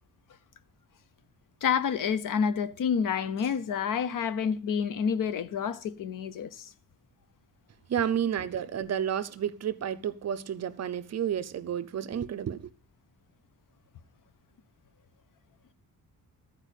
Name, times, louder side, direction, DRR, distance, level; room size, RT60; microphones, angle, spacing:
voice 1, 1.6-6.7, left 7 dB, 60° left, 0.8 m, -29 dB
voice 2, 7.9-12.7, right 9 dB, 45° right, 0.6 m, -31 dB
13.5 x 4.8 x 8.1 m
wide cardioid pair, 170°, 36 cm